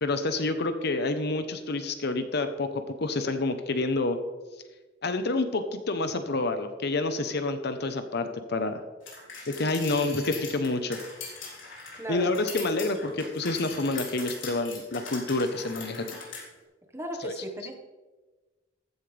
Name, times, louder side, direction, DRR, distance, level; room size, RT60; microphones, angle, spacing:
voice 1, 0.0-4.2 5.0-8.8 9.5-11.0 12.1-16.2 17.2-17.3, left 2 dB, 60° left, 8 dB, 1.0 m, -28 dB
sound 1, 9.1-16.4, left 4 dB, 90° left, 3.8 m, -40 dB
voice 2, 11.9-12.3 16.9-17.7, right 1 dB, 15° right, 2 dB, 1.5 m, -35 dB
15.0 x 11.0 x 3.5 m, 1.2 s
head